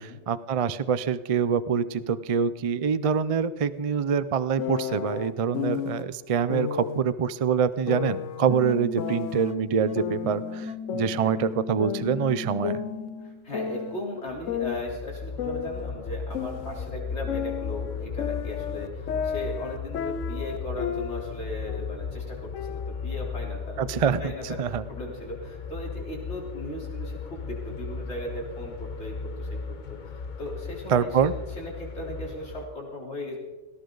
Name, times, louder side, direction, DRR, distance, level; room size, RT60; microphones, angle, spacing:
voice 1, 0.0-12.8 23.8-24.8 30.9-31.3, right 7 dB, 45° right, 15 dB, 0.4 m, -25 dB
sound 1, 4.6-6.0 6.5-7.0 7.9-9.5 10.0-11.5 11.8-14.0 14.5-16.9 17.3-21.4 21.7-22.0 22.5-23.5, left 8 dB, 85° left, 1.2 m, -33 dB
sound 2, 8.5-13.5, left 5 dB, 5° right, 0.9 m, -37 dB
voice 2, 13.2-23.9 24.2-24.6 24.9-33.4, left 1 dB, 60° left, -2 dB, 4.1 m, -37 dB
sound 3, 14.3-32.7, left 5 dB, 40° left, 1.0 m, -36 dB
19.0 x 16.5 x 3.9 m, 1.2 s
omnidirectional pair, 1.3 m